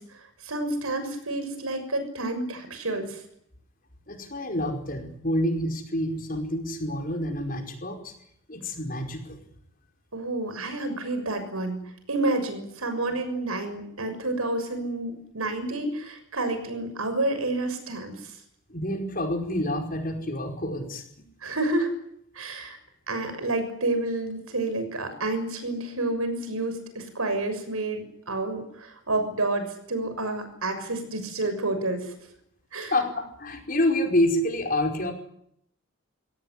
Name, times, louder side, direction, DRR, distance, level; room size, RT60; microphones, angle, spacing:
voice 1, 0.0-3.2 10.1-11.8 12.1-18.4 21.4-21.9 22.3-22.8 23.1-32.1 32.7-32.9, right 2 dB, 85° right, 8 dB, 6.5 m, -29 dB
voice 2, 4.1-8.1 8.5-9.4 18.7-21.0 32.9-35.1, left 1 dB, 40° left, 4 dB, 5.0 m, -28 dB
24.5 x 17.5 x 10.0 m, 0.72 s
head